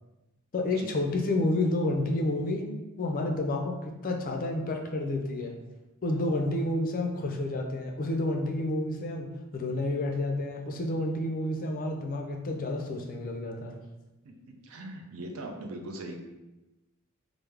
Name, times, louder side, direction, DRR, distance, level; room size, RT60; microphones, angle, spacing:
voice 1, 0.5-2.7 3.0-5.6 6.0-13.8, left 2 dB, 40° left, 2 dB, 0.4 m, -30 dB
voice 2, 14.6-16.2, right 1 dB, 70° right, 3 dB, 0.5 m, -40 dB
3.3 x 2.0 x 3.3 m, 1.0 s
head